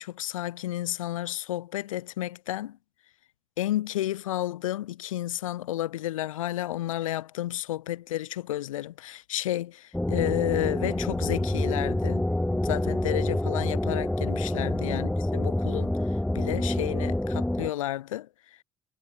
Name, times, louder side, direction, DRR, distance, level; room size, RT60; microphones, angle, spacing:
voice 1, 0.0-2.8 3.6-12.2 12.6-15.9 16.3-18.3, left 14 dB, 80° left, 0.8 m, -31 dB
sound 1, 9.9-17.7, left 1 dB, 5° left, 0.5 m, -27 dB
figure-of-eight pair, 50°, 17 cm